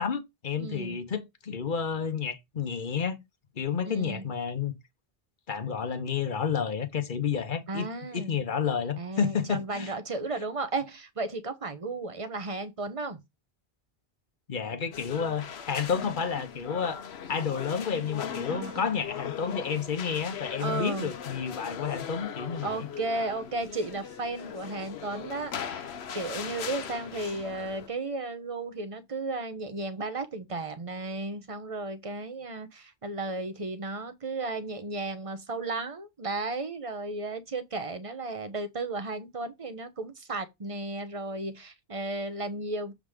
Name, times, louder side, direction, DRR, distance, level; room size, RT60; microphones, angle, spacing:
voice 1, 0.0-3.2 3.6-4.7 5.5-7.9 8.1-9.9 14.5-17.0 17.3-22.9, left 6 dB, 55° left, 1.1 m, -30 dB
voice 2, 0.6-1.0 3.8-4.2 7.7-8.4 9.0-13.2 18.5-18.9 20.6-21.1 22.6-42.9, right 2 dB, 35° right, 1.0 m, -34 dB
sound 1, 14.9-27.9, left 7 dB, 90° left, 1.0 m, -39 dB
7.1 x 3.8 x 4.9 m
omnidirectional pair, 1.0 m